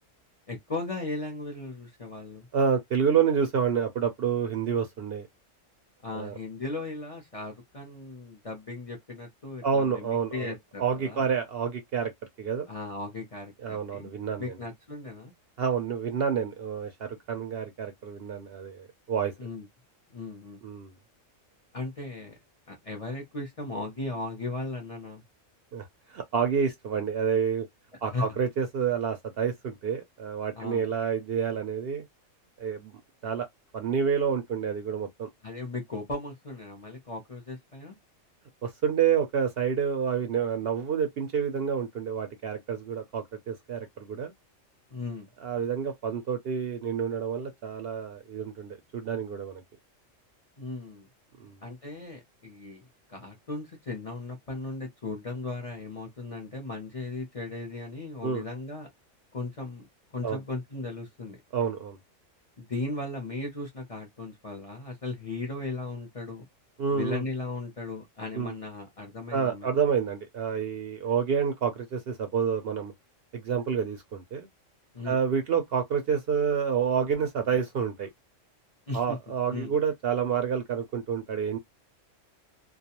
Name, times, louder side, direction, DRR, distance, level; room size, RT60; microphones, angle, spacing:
voice 1, 0.5-2.5 6.0-11.3 12.7-14.1 14.4-15.3 19.4-19.7 20.1-20.6 21.7-22.4 22.7-25.2 28.1-28.2 30.6-30.8 35.4-38.0 44.9-45.3 50.6-51.1 51.6-52.8 53.1-58.9 59.3-59.9 60.1-61.4 62.6-66.5 66.9-69.7 74.9-75.2 78.9-79.2 79.5-79.7, left 2 dB, 40° left, 0.5 m, -37 dB
voice 2, 2.5-5.3 6.1-6.4 9.6-10.5 10.8-12.1 12.4-12.7 13.6-14.5 15.6-19.3 20.6-20.9 25.7-27.7 28.0-32.0 32.6-32.9 33.2-33.5 33.7-35.3 38.6-44.3 45.4-49.6 51.4-51.6 58.2-58.4 60.2-60.4 61.5-62.0 66.8-67.2 68.3-68.5 69.3-72.9 73.3-74.5 75.1-78.1 78.9-81.6, right 7 dB, 65° right, 0.6 m, -28 dB
2.3 x 2.2 x 2.8 m
omnidirectional pair, 1.3 m